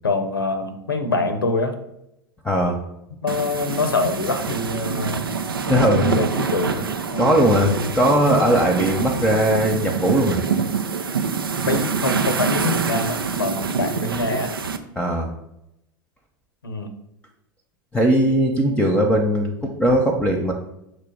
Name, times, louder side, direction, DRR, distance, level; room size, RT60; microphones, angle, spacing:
voice 1, 0.0-1.7 3.2-5.3 6.0-7.4 11.6-14.5 16.6-16.9, left 3 dB, 90° left, 8 dB, 0.7 m, -25 dB
voice 2, 2.4-2.8 5.7-6.1 7.2-10.4 15.0-15.3 17.9-20.5, equal, 10° left, 2 dB, 0.8 m, -19 dB
sound 1, 3.3-14.8, right 5 dB, 90° right, 0.5 m, -25 dB
6.4 x 3.0 x 5.0 m, 0.82 s
hypercardioid pair, 85°, 12 cm